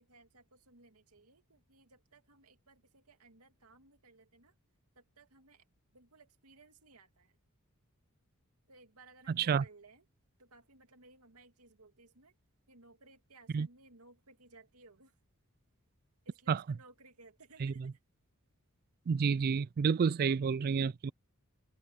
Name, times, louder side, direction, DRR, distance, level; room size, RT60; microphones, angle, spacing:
voice 1, 0.0-4.5 5.0-5.6 5.9-7.3 8.7-10.0 10.4-12.3 12.7-15.1 16.3-17.9, right 3 dB, 85° right, 2.4 m, -60 dB
voice 2, 9.3-9.6 13.5-13.7 16.5-16.6 17.6-17.9 19.1-21.1, right 6 dB, 45° right, 0.3 m, -30 dB
head